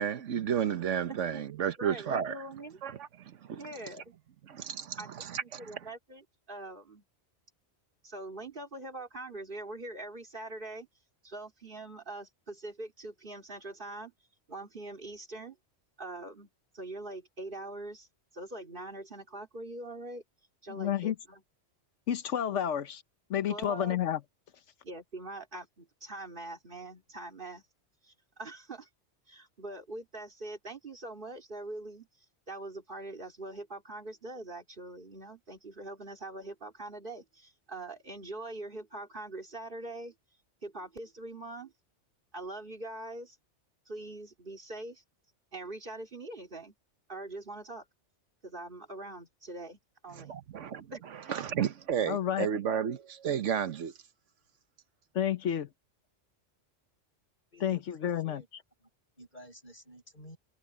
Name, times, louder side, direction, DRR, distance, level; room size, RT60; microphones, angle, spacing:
voice 1, 0.0-2.4 2.8-3.6 4.5-5.4 50.1-50.9 51.1-53.9, right 8 dB, 90° right, 1.3 m, -32 dB
voice 2, 1.1-1.4 1.8-2.8 3.6-4.2 5.0-5.1 5.4-7.0 8.0-10.9 11.2-14.1 14.5-15.6 16.0-18.1 18.3-20.2 20.6-21.4 22.5-22.6 23.5-24.0 24.8-27.6 28.0-28.9 29.3-32.1 32.5-40.1 40.6-41.7 42.3-43.4 43.9-45.0 45.5-46.8 47.1-47.8 48.4-50.3 50.9-51.5, right 2 dB, 45° right, 2.8 m, -43 dB
voice 3, 20.7-21.1 22.1-23.0 23.3-24.2 52.1-52.5 55.1-55.7 57.6-58.4, left 10 dB, 80° left, 1.2 m, -30 dB
voice 4, 57.5-58.5 58.8-58.9 59.2-60.4, equal, 40° left, 6.2 m, -52 dB
omnidirectional pair, 1.2 m